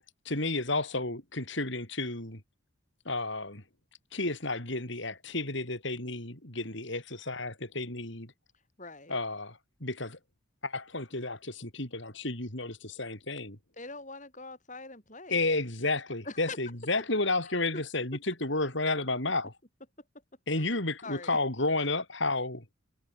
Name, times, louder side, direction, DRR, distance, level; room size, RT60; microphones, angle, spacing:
voice 1, 0.3-2.4 3.1-3.6 4.1-8.3 9.1-10.2 10.6-13.6 15.3-19.5 20.5-22.6, left 2 dB, 60° left, 5.6 m, -32 dB
voice 2, 8.8-9.2 13.8-15.5 16.2-16.6 17.4-17.8 20.5-21.4, left 3 dB, 35° left, 5.9 m, -44 dB
head